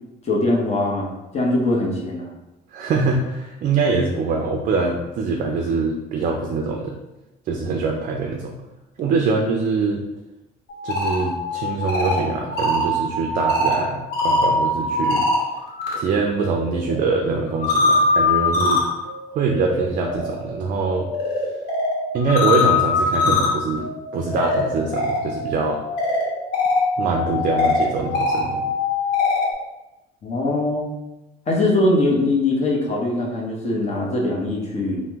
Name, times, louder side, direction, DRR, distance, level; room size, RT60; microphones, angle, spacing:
voice 1, 0.2-1.1 1.3-2.3 30.2-30.9 31.5-35.0, left 2 dB, 40° left, -1 dB, 0.7 m, -21 dB
voice 2, 2.7-6.9 7.5-8.6 9.0-10.0 10.8-15.3 16.0-18.8 19.3-21.1 22.1-23.9 24.1-25.8 27.0-28.7, right 4 dB, 50° right, 2 dB, 0.4 m, -23 dB
sound 1, 10.7-15.9 16.3-29.5, left 2 dB, 75° left, 0.9 m, -23 dB
2.8 x 2.0 x 3.4 m, 0.97 s
cardioid pair, 110°, 17 cm